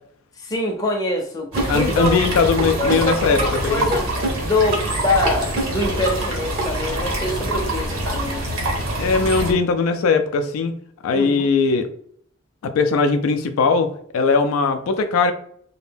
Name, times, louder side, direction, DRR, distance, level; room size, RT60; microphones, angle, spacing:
voice 1, 0.4-2.2 2.6-4.1 4.4-8.4 11.1-11.5, left 1 dB, 15° left, 0 dB, 0.5 m, -24 dB
sound 1, 1.5-9.5, right 1 dB, 75° right, 0.9 m, -25 dB
sound 2, 1.6-2.3 2.6-3.6 3.9-5.0 5.3-6.3 6.6-6.7, right 3 dB, 45° right, 0.6 m, -26 dB
voice 2, 1.7-4.0 9.0-10.7 11.0-11.9 12.6-15.3, left 4 dB, 75° left, 8 dB, 0.3 m, -19 dB
2.6 x 2.1 x 3.3 m, 0.63 s
head